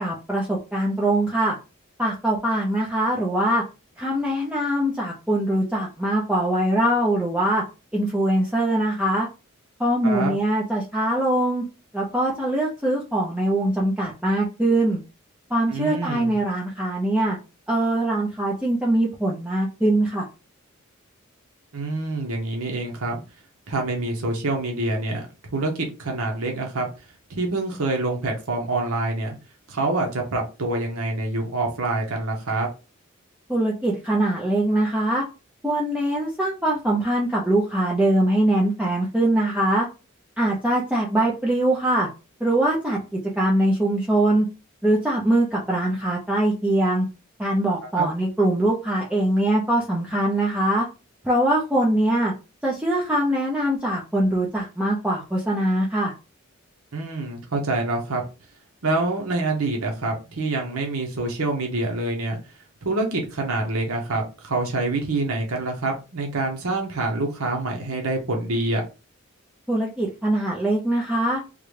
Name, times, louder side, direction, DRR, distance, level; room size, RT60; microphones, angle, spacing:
voice 1, 0.0-1.6 2.0-3.6 4.0-7.6 7.9-9.3 9.8-11.6 11.9-15.0 15.5-17.4 17.7-20.2 33.5-35.2 35.6-39.9 40.4-42.1 42.4-43.0 43.4-44.5 44.8-47.1 47.4-50.9 51.2-52.3 52.6-56.1 69.7-71.4, right 1 dB, 5° right, -4 dB, 0.5 m, -22 dB
voice 2, 10.0-10.4 15.7-16.3 21.7-23.2 23.7-25.3 25.5-26.9 27.3-29.3 29.7-32.7 47.9-48.1 56.9-58.3 58.8-62.4 62.8-68.8, right 2 dB, 85° right, 1 dB, 0.8 m, -26 dB
3.7 x 2.2 x 3.1 m, 0.30 s
head